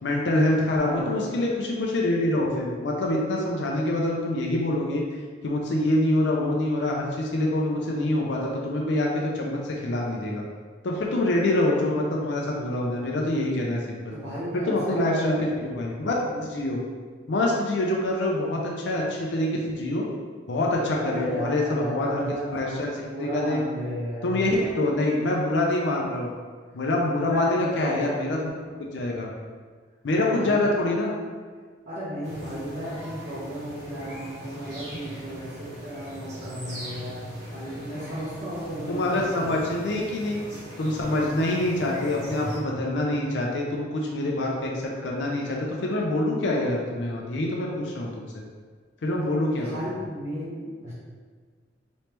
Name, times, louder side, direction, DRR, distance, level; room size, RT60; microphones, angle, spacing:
voice 1, 0.0-5.0 5.4-10.4 10.8-14.1 14.5-16.8 17.3-20.0 20.5-22.2 22.5-22.9 23.2-23.6 24.2-26.3 26.7-28.4 28.8-29.3 30.0-31.1 38.9-40.4 40.8-48.3 49.0-49.7, left 1 dB, 75° left, -2 dB, 0.5 m, -25 dB
voice 2, 0.8-1.3 14.1-15.4 16.2-16.4 20.9-22.5 23.0-24.8 27.2-28.3 30.1-30.6 31.8-39.5 49.2-50.9, equal, 80° right, -12 dB, 1.0 m, -34 dB
sound 1, 32.2-42.6, equal, 60° right, 1.1 m, -40 dB
3.1 x 3.0 x 3.2 m, 1.6 s
head